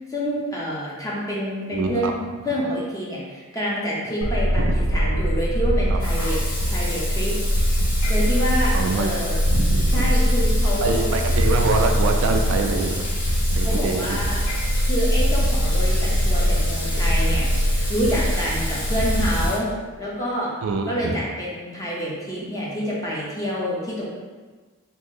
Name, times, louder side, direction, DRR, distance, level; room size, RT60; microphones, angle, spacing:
voice 1, 0.0-6.4 6.7-7.3 8.1-9.4 9.9-11.1 13.6-14.4 14.8-17.5 17.9-19.7 20.0-20.5 20.9-24.0, equal, 15° left, -6 dB, 0.7 m, -27 dB
voice 2, 1.7-2.1 4.5-4.7 5.9-6.3 8.7-9.1 9.5-10.1 10.8-13.2 13.5-14.2 20.6-21.1, right 3 dB, 60° right, 4 dB, 0.3 m, -25 dB
sound 1, 4.2-19.5, equal, 85° left, 0.5 m, -22 dB
Water tap faucet / Sink (filling or washing), 6.0-19.6, left 1 dB, 40° left, 0.9 m, -33 dB
2.9 x 2.6 x 3.6 m, 1.4 s
head